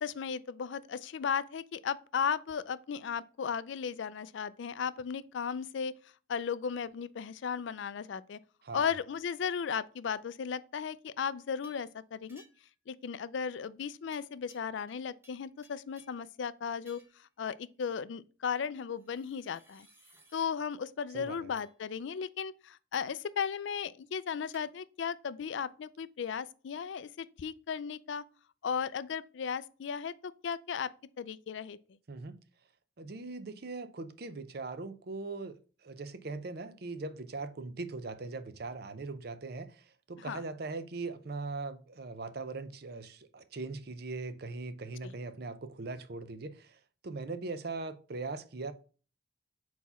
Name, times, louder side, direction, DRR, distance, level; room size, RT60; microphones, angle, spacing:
voice 1, 0.0-6.0 6.3-8.4 8.7-12.4 12.9-19.9 20.3-28.2 28.6-30.9 31.2-31.8 40.2-40.4 45.0-45.1, left 7 dB, 65° left, 0.4 m, -36 dB
voice 2, 8.6-9.0 21.1-21.5 32.1-32.4 33.0-35.6 35.8-48.7, right 3 dB, 50° right, 0.5 m, -40 dB
sound 1, 11.6-11.9 12.3-12.8 14.1-15.0 15.2-16.3 16.9-17.2 19.0-20.5 21.6-21.8 22.9-23.2 24.5-24.7, equal, 10° right, 0.8 m, -61 dB
4.7 x 4.1 x 5.5 m
head